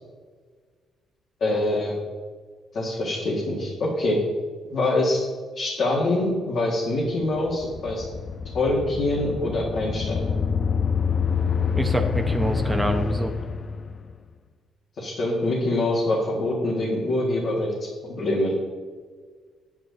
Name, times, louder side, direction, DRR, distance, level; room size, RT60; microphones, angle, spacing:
voice 1, 1.4-2.0 2.7-4.2 4.7-5.2 5.6-8.1 8.5-10.3 15.0-18.5, left 1 dB, 60° left, -4 dB, 2.1 m, -25 dB
sound 1, 7.2-14.2, left 5 dB, 45° left, 0.6 m, -26 dB
voice 2, 11.7-13.3, right 1 dB, 10° right, 3 dB, 0.9 m, -26 dB
9.3 x 9.1 x 4.1 m, 1.6 s
cardioid pair, 90°, 0 cm